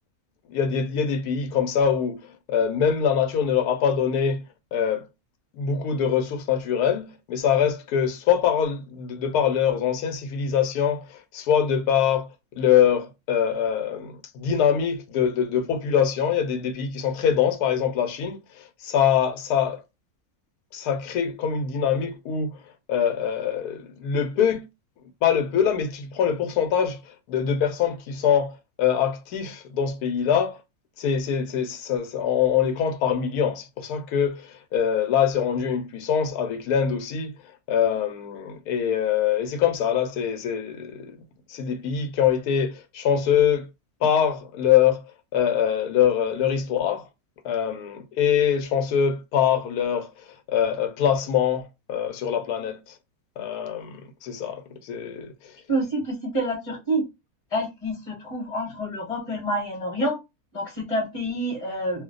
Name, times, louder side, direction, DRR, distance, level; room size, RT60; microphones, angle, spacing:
voice 1, 0.5-2.2 2.5-4.4 4.7-5.0 5.5-12.3 12.6-19.8 20.7-22.6 22.9-24.7 25.2-30.6 31.0-37.3 37.7-41.2 41.5-43.7 44.0-45.0 45.3-47.1 47.4-52.9 53.4-55.5, left 8 dB, 85° left, 1.1 m, -24 dB
voice 2, 55.7-57.0 57.5-60.2 60.5-62.0, right 1 dB, 25° left, 1.1 m, -27 dB
2.6 x 2.1 x 3.6 m
omnidirectional pair, 1.6 m